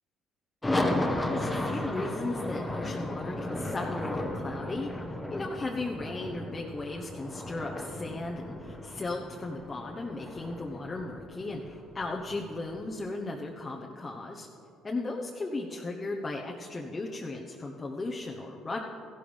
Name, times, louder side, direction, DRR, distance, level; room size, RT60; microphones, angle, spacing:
sound 1, 0.6-12.8, left 1 dB, 15° left, 1.3 m, -34 dB
voice 1, 1.3-14.5 14.8-18.8, left 2 dB, 30° left, 0 dB, 1.1 m, -36 dB
15.0 x 12.5 x 3.5 m, 2.9 s
supercardioid pair, 70°, 0 cm